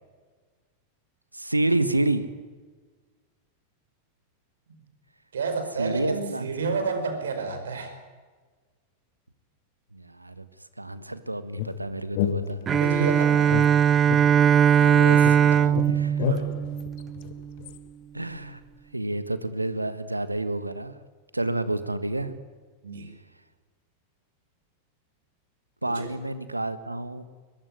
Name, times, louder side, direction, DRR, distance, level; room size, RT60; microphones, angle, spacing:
voice 1, 1.3-2.3 5.8-6.7 9.9-10.4 10.8-12.6 13.0-13.1 14.7-16.3 18.1-18.6 18.9-20.9 21.3-22.3 25.8-27.3, right 2 dB, 85° right, 13 dB, 1.6 m, -29 dB
voice 2, 5.3-7.9 12.8-13.5 16.3-16.5 22.8-23.1 25.8-26.1, right 4 dB, 65° right, 8 dB, 5.1 m, -30 dB
sound 1, 11.6-13.0 13.5-14.9 15.2-17.8, left 12 dB, 50° left, 1.5 m, -32 dB
Bowed string instrument, 12.7-17.4, right 8 dB, 25° right, 0.7 m, -20 dB
23.0 x 21.0 x 9.8 m, 1.4 s
figure-of-eight pair, 90°, 0 cm